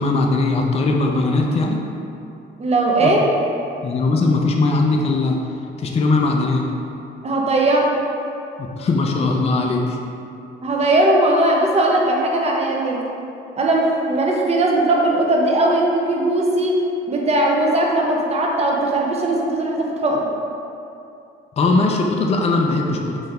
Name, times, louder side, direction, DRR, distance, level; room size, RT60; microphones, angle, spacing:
voice 1, 0.0-1.8 3.0-3.1 3.8-5.4 5.8-6.6 8.6-10.0 10.8-10.9 21.6-23.2, left 3 dB, 30° left, 1 dB, 0.4 m, -19 dB
voice 2, 2.6-3.2 7.2-7.9 10.6-13.0 13.6-16.8 17.1-20.3, right 2 dB, 30° right, -1 dB, 0.7 m, -18 dB
3.8 x 2.6 x 4.2 m, 2.7 s
cardioid pair, 90°, 20 cm